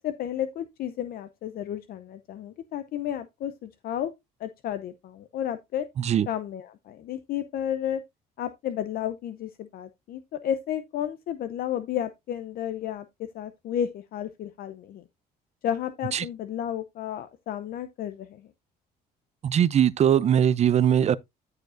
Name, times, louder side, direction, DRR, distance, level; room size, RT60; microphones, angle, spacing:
voice 1, 0.0-4.1 4.4-5.9 6.3-8.0 8.4-15.0 15.6-18.5, left 10 dB, 60° left, 0.6 m, -32 dB
voice 2, 19.4-21.2, right 9 dB, 40° right, 0.5 m, -21 dB
14.0 x 4.8 x 2.5 m
cardioid pair, 110°, 17 cm